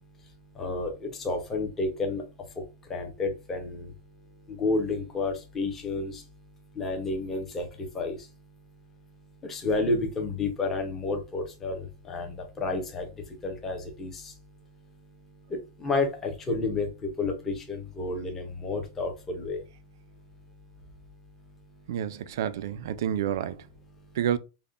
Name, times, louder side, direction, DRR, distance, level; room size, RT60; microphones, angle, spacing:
voice 1, 0.6-0.9 1.2-2.2 2.9-3.8 4.6-6.1 6.8-7.7 7.9-8.2 9.5-11.8 12.1-12.3 12.6-13.1 13.4-14.1 15.8-16.9 17.2-19.6, left 3 dB, 10° left, 0.6 m, -30 dB
voice 2, 21.9-23.7 24.1-24.4, right 10 dB, 60° right, 0.3 m, -29 dB
5.2 x 2.1 x 2.4 m
supercardioid pair, 175°, 2 cm